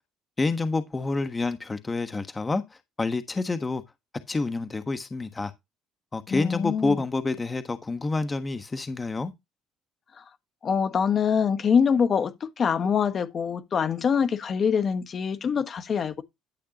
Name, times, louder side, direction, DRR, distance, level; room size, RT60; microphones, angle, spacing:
voice 1, 0.4-2.6 3.0-3.8 4.3-5.5 6.1-9.3, left 3 dB, 20° left, 1.3 m, -28 dB
voice 2, 6.3-7.0 10.2-10.3 10.6-16.2, left 6 dB, 45° left, 1.3 m, -24 dB
12.0 x 6.6 x 2.9 m
supercardioid pair, 85°, 0 cm